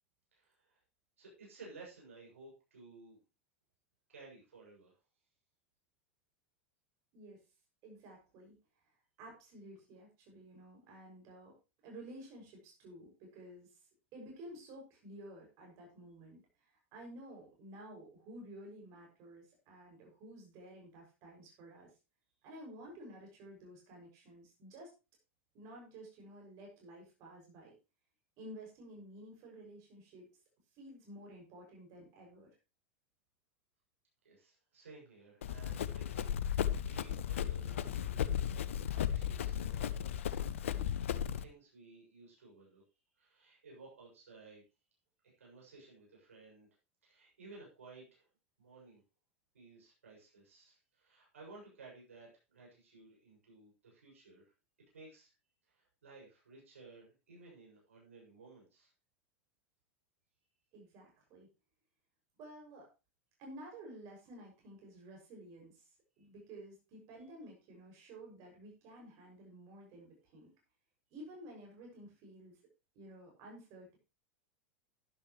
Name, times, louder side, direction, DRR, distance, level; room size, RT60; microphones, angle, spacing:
voice 1, 0.3-0.8 1.2-3.2 4.1-5.0 34.2-38.4 38.9-40.4 41.4-42.8 43.2-44.7 45.4-46.7 47.0-48.3 48.6-49.0 49.5-54.5 54.9-55.3 55.7-58.9, right 3 dB, 75° right, -3 dB, 7.1 m, -56 dB
voice 2, 7.8-8.6 9.2-11.5 11.8-21.9 22.4-24.9 25.5-27.7 28.4-30.3 30.7-32.5 60.7-61.5 62.4-62.9 63.4-65.9 66.2-70.5 71.1-72.6 72.9-74.0, right 1 dB, 45° right, 0 dB, 6.6 m, -52 dB
Run, 35.4-41.4, left 9 dB, 65° left, 0.8 m, -35 dB
12.5 x 11.5 x 3.2 m, 0.28 s
figure-of-eight pair, 85°, 7 cm